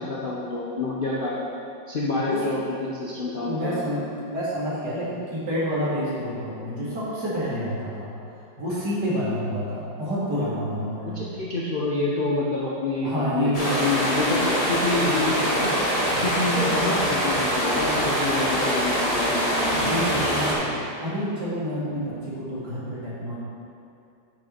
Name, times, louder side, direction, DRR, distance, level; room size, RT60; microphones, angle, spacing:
voice 1, 0.0-1.3 1.9-3.7 11.1-13.5 13.8-15.7 16.2-19.9, left 2 dB, 50° left, -6 dB, 0.6 m, -27 dB
voice 2, 3.4-8.1 8.6-11.2 13.0-13.8 16.1-16.3 19.8-23.4, equal, 60° right, -9 dB, 2.7 m, -28 dB
sound 1, 13.5-20.5, equal, 20° left, 1.4 m, -24 dB
8.7 x 5.4 x 4.4 m, 2.6 s
omnidirectional pair, 2.0 m